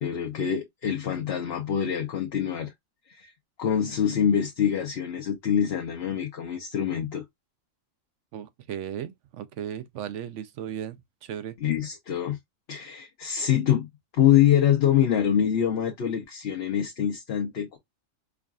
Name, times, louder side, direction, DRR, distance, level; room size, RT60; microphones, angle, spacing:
voice 1, 0.0-2.7 3.1-3.3 3.6-7.2 11.6-12.4 12.7-13.9 14.1-17.8, left 9 dB, 55° left, 0.9 m, -25 dB
voice 2, 8.3-11.0 11.2-11.6, right 9 dB, 70° right, 0.9 m, -36 dB
4.7 x 2.5 x 2.2 m
omnidirectional pair, 1.4 m